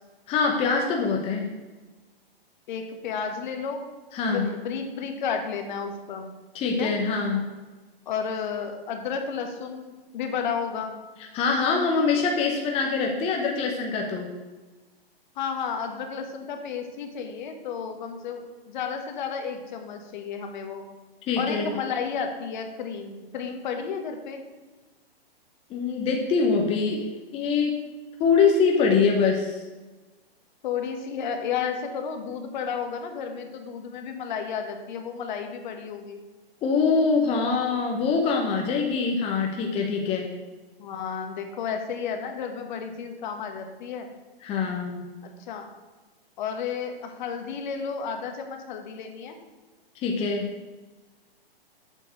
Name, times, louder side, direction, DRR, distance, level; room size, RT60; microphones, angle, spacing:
voice 1, 0.3-1.5 4.1-4.5 6.5-7.5 11.3-14.3 21.3-21.7 25.7-27.8 28.2-29.6 36.6-40.3 44.4-45.1 49.9-50.5, left 5 dB, 20° left, 1 dB, 0.8 m, -24 dB
voice 2, 2.7-3.8 4.2-6.3 6.6-6.9 8.1-10.9 15.3-20.9 21.4-24.4 30.6-36.2 40.8-44.1 45.2-45.7 46.4-49.3, left 6 dB, 50° left, 5 dB, 1.4 m, -32 dB
7.7 x 4.5 x 6.4 m, 1.2 s
hypercardioid pair, 130°, 30 cm